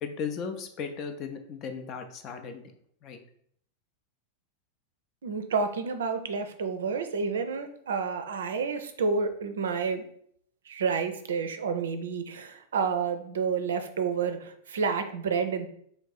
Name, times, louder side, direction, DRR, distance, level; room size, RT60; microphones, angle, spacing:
voice 1, 0.0-2.7 3.0-3.2, left 6 dB, 35° left, 6 dB, 0.5 m, -36 dB
voice 2, 5.2-10.0 10.7-15.7, right 5 dB, 65° right, 8 dB, 0.4 m, -29 dB
3.3 x 2.5 x 3.9 m, 0.65 s
figure-of-eight pair, 90°, 0 cm